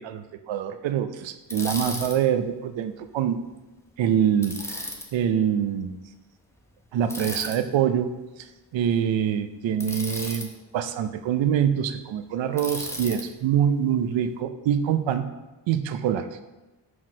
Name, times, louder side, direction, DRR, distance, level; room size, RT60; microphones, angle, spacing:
voice 1, 0.0-3.4 4.0-6.0 6.9-8.1 8.7-10.5 10.7-15.3 15.7-16.3, right 9 dB, 85° right, 10 dB, 0.6 m, -25 dB
Bicycle, 1.5-2.2 4.4-5.1 7.1-7.6 9.8-10.5 12.6-13.3, left 1 dB, 5° left, 0.7 m, -34 dB
5.9 x 4.7 x 6.1 m, 1.1 s
wide cardioid pair, 160°, 44 cm